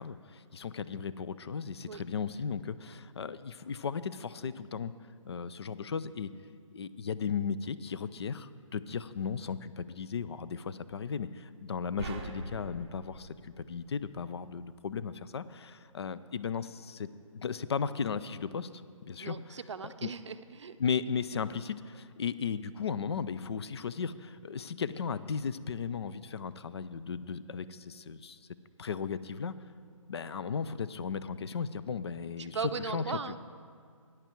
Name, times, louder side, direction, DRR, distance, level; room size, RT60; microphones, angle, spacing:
voice 1, 0.0-4.9 5.2-6.3 6.7-17.1 17.3-18.7 19.1-19.6 19.8-20.1 20.8-28.4 28.8-29.5 30.1-33.1, left 6 dB, 50° left, 15 dB, 0.5 m, -36 dB
sound 1, 12.0-14.4, right 3 dB, 15° right, 0.7 m, -44 dB
voice 2, 19.2-20.8 32.4-33.4, right 5 dB, 60° right, 11 dB, 0.5 m, -38 dB
15.0 x 10.5 x 4.5 m, 2.1 s
hypercardioid pair, 160°, 17 cm